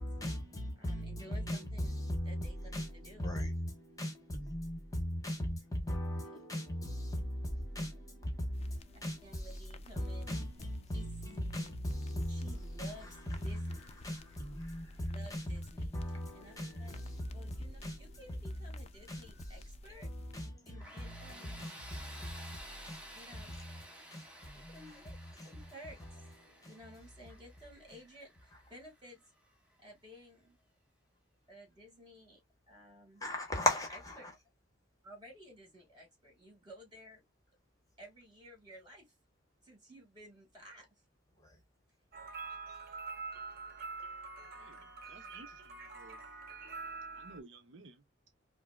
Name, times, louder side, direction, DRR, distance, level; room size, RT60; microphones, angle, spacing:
voice 1, 0.0-19.7 20.0-24.9 25.2-25.5 26.0-26.8 33.2-34.3 41.4-41.6, left 1 dB, 20° left, 1.0 m, -39 dB
voice 2, 0.8-2.0 2.3-3.3 6.1-6.3 9.2-10.2 10.9-11.1 12.3-13.1 13.4-13.8 15.0-15.9 16.3-17.0 17.3-20.1 20.7-21.6 23.1-23.5 24.5-25.1 25.4-26.2 26.6-28.3 28.7-29.2 29.8-30.6 31.5-32.4 32.7-33.2 34.2-34.3 35.0-37.2 38.0-39.1 39.6-40.9, right 1 dB, 25° right, 2.3 m, -54 dB
sound 1, 8.5-20.4, left 3 dB, 35° left, 0.4 m, -55 dB
Tools, 20.8-29.6, equal, 5° right, 1.0 m, -53 dB
sound 2, 42.1-47.4, right 4 dB, 50° right, 0.9 m, -45 dB
voice 3, 44.5-46.2 47.1-48.0, right 3 dB, 70° right, 0.6 m, -55 dB
4.9 x 2.0 x 2.4 m
head